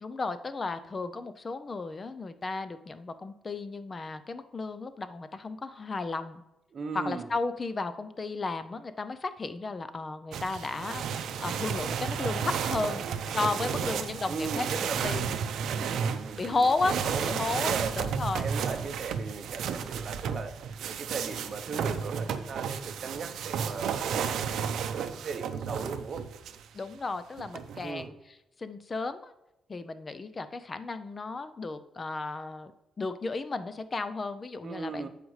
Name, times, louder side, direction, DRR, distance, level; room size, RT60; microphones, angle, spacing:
voice 1, 0.0-6.4 6.9-13.1 13.3-14.7 15.0-15.3 16.4-17.0 17.2-18.4 24.1-24.2 26.7-28.1 28.6-29.3 29.7-32.7 33.0-35.1, left 3 dB, 25° left, 11 dB, 0.5 m, -33 dB
voice 2, 6.7-7.3 12.9-15.3 15.6-18.0 18.4-26.2 27.8-28.1 34.6-35.1, right 4 dB, 40° right, 7 dB, 0.8 m, -38 dB
sound 1, 10.3-26.7 27.4-28.1, right 7 dB, 80° right, 0.5 m, -33 dB
14.5 x 5.0 x 3.2 m, 0.91 s
cardioid pair, 160°, 0 cm